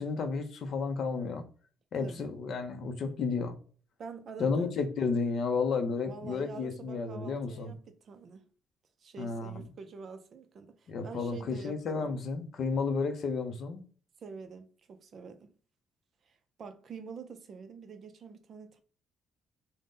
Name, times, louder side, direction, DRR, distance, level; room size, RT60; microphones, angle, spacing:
voice 1, 0.0-1.4 1.9-3.5 4.4-7.7 9.2-9.6 10.9-13.8, left 4 dB, 45° left, 0.5 m, -32 dB
voice 2, 2.0-2.3 4.0-4.7 6.0-8.5 9.0-12.1 14.2-15.5 16.3-18.8, right 5 dB, 35° right, 0.4 m, -46 dB
3.5 x 2.0 x 3.8 m
cardioid pair, 175°, 0 cm